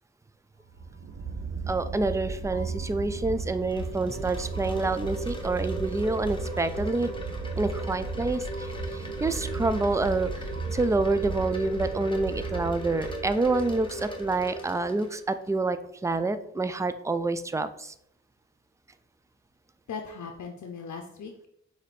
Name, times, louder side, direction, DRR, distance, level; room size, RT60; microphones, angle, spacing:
sound 1, 0.7-14.8, right 4 dB, 55° right, 0.6 m, -35 dB
voice 1, 1.7-7.1 7.6-17.9, right 2 dB, 10° right, 11 dB, 0.3 m, -28 dB
Wind chime, 3.3-15.5, equal, 15° left, 1.0 m, -39 dB
voice 2, 19.9-21.5, left 5 dB, 75° left, 2 dB, 0.6 m, -38 dB
5.8 x 2.8 x 3.2 m, 0.74 s
cardioid pair, 55°, 29 cm